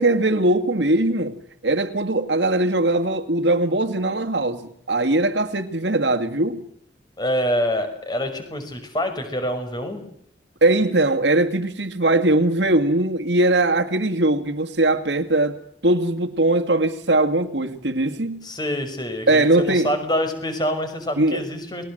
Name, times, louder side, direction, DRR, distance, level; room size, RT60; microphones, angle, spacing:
voice 1, 0.0-1.4 1.6-6.6 10.6-15.6 15.8-18.5 19.3-19.9 21.2-21.4, right 2 dB, 85° right, 2.1 m, -20 dB
voice 2, 7.2-10.0 18.4-21.8, equal, 25° left, 5.9 m, -26 dB
30.0 x 21.0 x 7.8 m
head